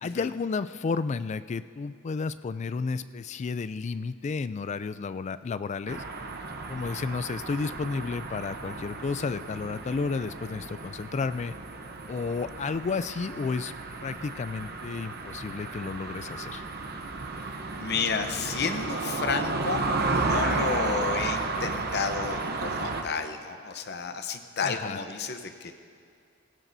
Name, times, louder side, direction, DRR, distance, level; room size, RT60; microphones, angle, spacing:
voice 1, 0.0-6.0 6.7-11.5 12.1-13.7 14.0-16.7 24.6-25.0, left 4 dB, 35° left, 14 dB, 0.3 m, -32 dB
sound 1, 5.9-23.0, right 3 dB, 50° right, 0.9 m, -33 dB
voice 2, 17.3-25.7, left 5 dB, 55° left, 7 dB, 0.8 m, -32 dB
17.5 x 16.0 x 2.7 m, 2.3 s
head